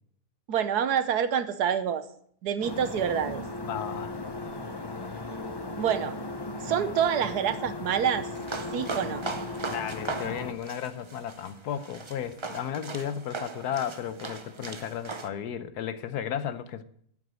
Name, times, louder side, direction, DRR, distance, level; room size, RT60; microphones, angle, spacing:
voice 1, 0.5-2.0 2.4-3.4 5.8-6.2 6.6-8.3 8.7-9.2, right 8 dB, 70° right, 1.4 m, -27 dB
sound 1, 2.6-10.5, left 2 dB, 25° left, 0.6 m, -37 dB
voice 2, 3.6-4.1 9.6-16.8, left 9 dB, 70° left, 1.3 m, -34 dB
sound 2, 8.4-15.3, right 4 dB, 40° right, 0.4 m, -38 dB
9.3 x 8.1 x 8.9 m
omnidirectional pair, 1.8 m